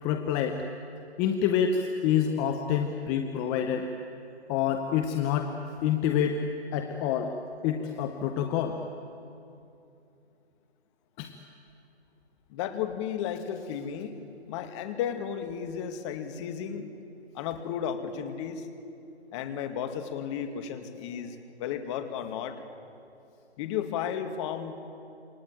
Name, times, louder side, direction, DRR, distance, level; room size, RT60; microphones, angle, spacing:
voice 1, 0.0-0.6 1.2-3.9 4.5-5.5 5.8-6.4 6.7-7.3 7.6-8.8 11.2-11.3, left 8 dB, 10° left, 5 dB, 0.6 m, -27 dB
voice 2, 12.5-16.9 17.3-18.7 19.3-22.6 23.6-24.8, left 8 dB, 25° left, 8 dB, 2.0 m, -34 dB
27.5 x 23.5 x 9.1 m, 2.7 s
figure-of-eight pair, 145°, 33 cm